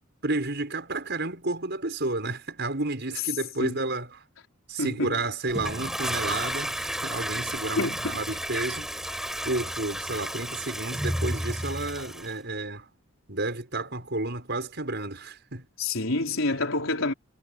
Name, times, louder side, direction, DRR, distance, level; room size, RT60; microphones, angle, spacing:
voice 1, 0.2-4.2 4.7-8.9 9.4-12.9 13.3-15.7, right 2 dB, 50° right, 6.1 m, -31 dB
voice 2, 4.8-5.1 7.8-8.2 15.8-17.1, left 2 dB, 70° left, 4.6 m, -28 dB
Toilet flush, 5.5-12.3, equal, ahead, 5.5 m, -32 dB
head